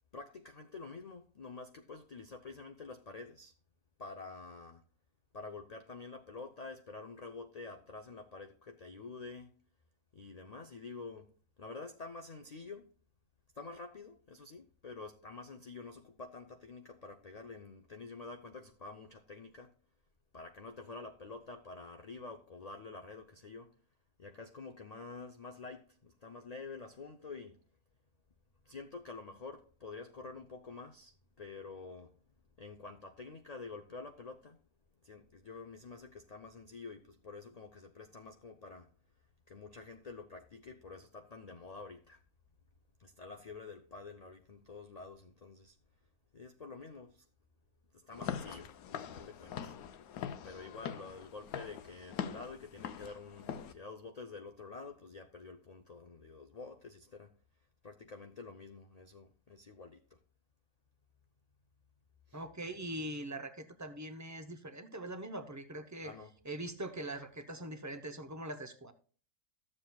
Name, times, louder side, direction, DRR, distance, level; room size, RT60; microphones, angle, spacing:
voice 1, 0.1-3.5 4.0-4.8 5.3-9.5 10.1-11.3 11.6-12.9 13.5-19.7 20.3-23.7 24.2-27.6 28.6-32.2 32.6-34.6 35.0-38.9 39.5-42.2 43.0-45.8 46.3-47.3 47.9-49.8 50.4-57.3 57.8-60.2 62.3-62.4 66.0-66.3, left 4 dB, 50° left, 0.5 m, -48 dB
Walk footsteps / Siren, 48.1-53.7, left 8 dB, 80° left, 1.2 m, -43 dB
voice 2, 62.3-66.1 66.4-68.9, right 1 dB, 25° right, 0.4 m, -42 dB
13.5 x 7.5 x 2.2 m
omnidirectional pair, 1.5 m